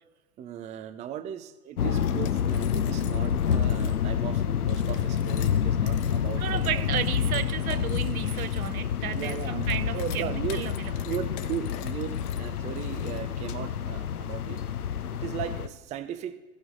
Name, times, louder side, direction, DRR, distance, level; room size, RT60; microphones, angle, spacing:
voice 1, 0.4-7.0 9.1-9.7 9.9-10.7 11.0-14.6 15.1-16.4, right 10 dB, 15° right, 0.5 m, -37 dB
sound 1, 1.8-15.7, left 8 dB, 80° left, 0.8 m, -28 dB
sound 2, 2.0-4.0 4.6-13.5, left 10 dB, 40° left, 1.2 m, -47 dB
voice 2, 6.4-10.7, right 11 dB, 70° right, 0.7 m, -33 dB
15.0 x 6.2 x 5.2 m
figure-of-eight pair, 95°, 45 cm